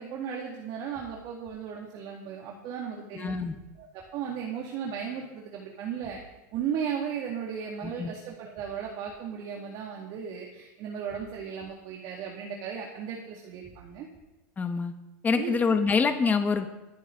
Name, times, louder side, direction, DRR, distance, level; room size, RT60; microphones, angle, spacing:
voice 1, 0.0-3.3 3.8-6.2 6.5-14.1 15.3-15.6, right 7 dB, 50° right, -1 dB, 2.2 m, -36 dB
sound 1, 0.9-1.5 3.5-4.1 6.0-6.6 8.6-9.1 11.1-11.7 13.6-14.2, right 4 dB, 15° right, 3.5 m, -54 dB
voice 2, 3.1-3.5 7.8-8.1 14.6-14.9 15.2-16.7, left 5 dB, 15° left, 7 dB, 1.2 m, -25 dB
24.5 x 8.2 x 3.9 m, 1.0 s
supercardioid pair, 130°, 10 cm